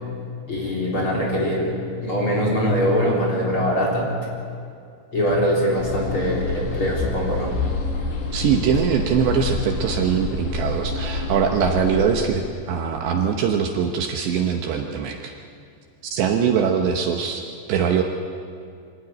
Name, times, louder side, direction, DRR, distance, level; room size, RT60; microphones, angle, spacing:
voice 1, 0.5-1.7 2.0-4.1 5.1-7.5, equal, 25° left, -3 dB, 4.1 m, -22 dB
sound 1, 5.8-12.0, left 3 dB, 65° left, 4.9 m, -27 dB
voice 2, 8.3-15.3 16.0-18.0, right 7 dB, 70° right, 3 dB, 2.9 m, -22 dB
24.5 x 16.0 x 9.6 m, 2.4 s
omnidirectional pair, 5.9 m